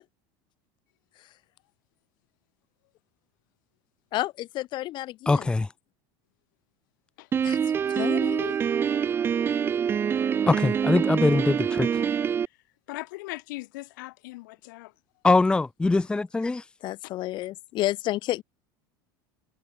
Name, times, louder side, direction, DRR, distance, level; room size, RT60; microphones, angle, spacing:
voice 1, 4.1-5.5 7.4-7.6 7.9-8.6 16.8-18.4, left 16 dB, 50° left, 2.2 m, -31 dB
voice 2, 5.3-5.7 10.5-12.1 15.2-16.6, left 3 dB, 10° left, 0.8 m, -22 dB
Piano, 7.3-12.5, right 7 dB, 20° right, 0.4 m, -25 dB
voice 3, 12.9-14.9, left 21 dB, 90° left, 2.5 m, -39 dB
supercardioid pair, 140°, 10 cm